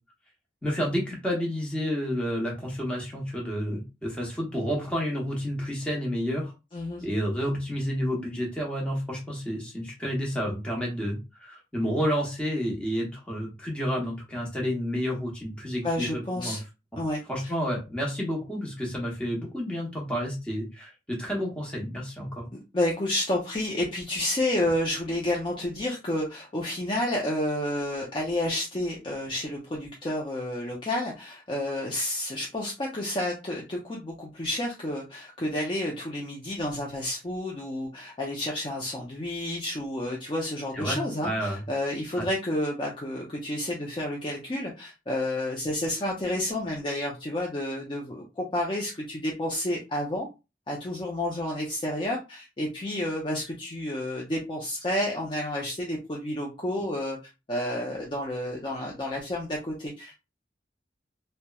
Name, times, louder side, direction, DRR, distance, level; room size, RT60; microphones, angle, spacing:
voice 1, 0.6-6.5 7.0-16.6 17.3-22.5 40.7-41.0 41.2-41.6 42.2-42.3, equal, 5° left, -2 dB, 0.8 m, -30 dB
voice 2, 6.7-7.0 15.8-16.6 17.0-17.2 22.7-50.3 50.7-57.2 57.5-60.2, left 1 dB, 30° left, -2 dB, 0.4 m, -30 dB
2.9 x 2.1 x 2.2 m, 0.27 s
head